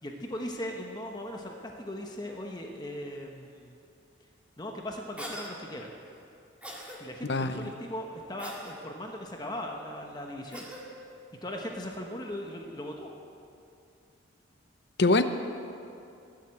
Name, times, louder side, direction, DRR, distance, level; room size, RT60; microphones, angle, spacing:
voice 1, 0.0-3.7 4.6-5.9 7.0-10.7 11.4-13.1, left 1 dB, 20° left, 1 dB, 1.1 m, -38 dB
Cough, 5.2-5.5 6.6-7.0 8.4-8.8 10.5-10.8, equal, 5° right, 1.9 m, -41 dB
voice 2, 7.2-7.7 15.0-15.2, left 2 dB, 55° left, 9 dB, 0.8 m, -24 dB
20.5 x 7.8 x 8.4 m, 2.6 s
head